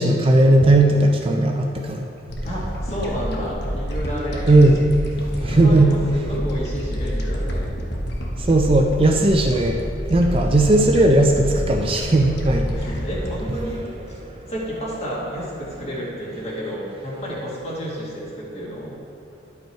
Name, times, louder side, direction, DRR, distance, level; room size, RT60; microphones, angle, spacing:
voice 1, 0.0-2.1 4.5-4.9 5.4-6.0 8.4-9.8 10.1-12.8 14.3-14.5, right 2 dB, 30° right, 2 dB, 0.5 m, -17 dB
sound 1, 2.3-14.8, equal, 60° left, 1.0 m, -28 dB
voice 2, 2.5-4.5 5.4-7.7 12.7-14.2 14.5-19.0, equal, 35° left, -5 dB, 1.8 m, -31 dB
10.5 x 5.4 x 4.5 m, 2.6 s
head